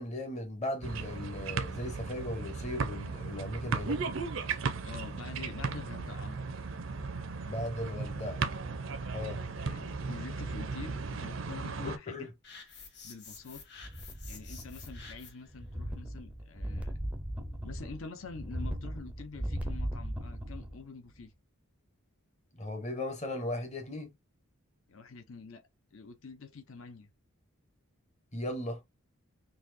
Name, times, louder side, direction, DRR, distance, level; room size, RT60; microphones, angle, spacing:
voice 1, 0.0-4.2 7.5-8.4 9.1-9.4 11.8-12.3 22.6-24.1 28.3-28.8, left 1 dB, 30° left, 0.9 m, -37 dB
sound 1, 0.8-12.0, right 4 dB, 60° right, 0.5 m, -36 dB
voice 2, 4.8-6.5 9.6-12.3 13.0-13.6 14.3-16.9 17.6-21.3 24.9-27.1, left 4 dB, 65° left, 0.7 m, -46 dB
sound 2, 12.4-15.5, left 5 dB, 50° left, 1.6 m, -50 dB
sound 3, 13.8-15.3 15.5-20.8 21.2-21.3, equal, 5° right, 0.5 m, -38 dB
4.1 x 2.8 x 2.6 m
head